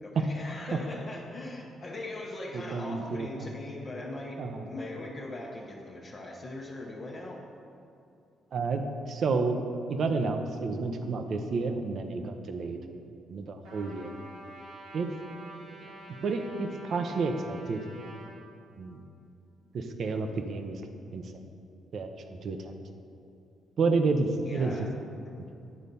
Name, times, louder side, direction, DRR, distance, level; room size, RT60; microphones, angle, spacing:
voice 1, 0.0-7.4 15.8-16.1 24.4-24.9, left 2 dB, 40° left, -3 dB, 1.0 m, -40 dB
voice 2, 2.5-3.5 4.4-4.7 8.5-8.8 9.1-9.6 9.9-12.8 13.3-14.1 14.9-15.1 16.2-17.8 18.8-19.0 19.7-20.8 21.1-21.4 21.9-22.7 23.8-24.7, right 4 dB, 60° right, 6 dB, 0.7 m, -30 dB
Trumpet, 13.6-18.3, right 2 dB, 85° right, 1.9 m, -48 dB
9.5 x 4.0 x 6.9 m, 2.6 s
cardioid pair, 90°, 0 cm